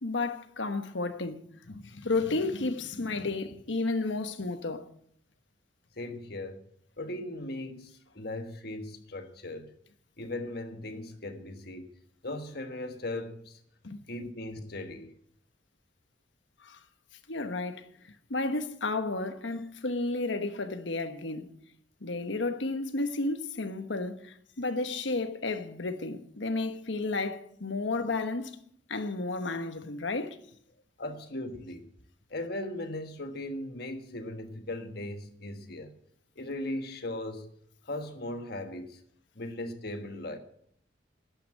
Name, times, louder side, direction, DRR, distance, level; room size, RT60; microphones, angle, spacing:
voice 1, 0.0-4.9 13.8-14.0 16.6-16.8 17.3-17.9 18.3-21.5 22.0-28.6 28.9-30.4, left 3 dB, 80° left, 1.2 m, -32 dB
voice 2, 6.0-6.6 7.0-9.8 10.2-11.9 12.2-13.6 14.1-15.1 31.0-31.9 32.3-36.0 36.3-37.5 37.8-39.0 39.3-40.4, left 1 dB, 55° left, 1.5 m, -38 dB
12.0 x 9.6 x 7.7 m
head